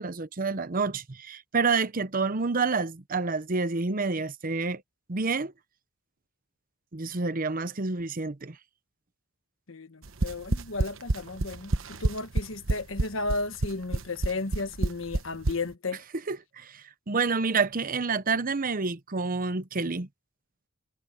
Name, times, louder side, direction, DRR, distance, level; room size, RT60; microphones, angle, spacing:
voice 1, 0.0-4.8 5.1-5.5 6.9-8.6 16.3-20.1, right 4 dB, 45° right, 0.9 m, -28 dB
voice 2, 9.7-16.0, left 3 dB, 75° left, 1.4 m, -34 dB
sound 1, 10.0-15.6, right 2 dB, 75° right, 1.2 m, -26 dB
head